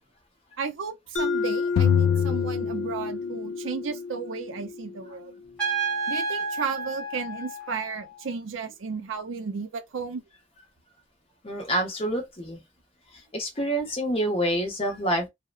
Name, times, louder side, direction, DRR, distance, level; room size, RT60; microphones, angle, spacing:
voice 1, 0.6-5.3 6.1-10.2, right 5 dB, 75° right, 0.5 m, -34 dB
Mallet percussion, 1.2-5.7, left 4 dB, 60° left, 0.8 m, -31 dB
sound 1, 1.8-3.5, left 8 dB, 80° left, 0.3 m, -24 dB
Trumpet, 5.6-8.2, right 4 dB, 5° left, 1.0 m, -30 dB
voice 2, 11.4-12.6 13.1-15.3, right 1 dB, 30° left, 0.8 m, -27 dB
2.7 x 2.1 x 2.3 m
head